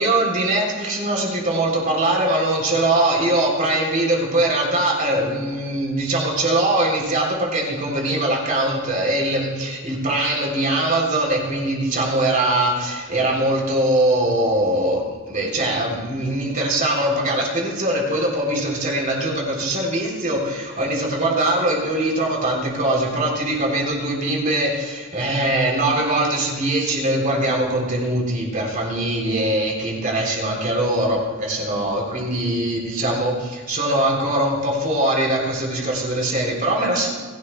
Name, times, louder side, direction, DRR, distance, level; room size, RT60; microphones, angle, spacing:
voice 1, 0.0-37.1, right 1 dB, 40° right, -1 dB, 3.3 m, -22 dB
29.5 x 12.0 x 2.3 m, 1.4 s
head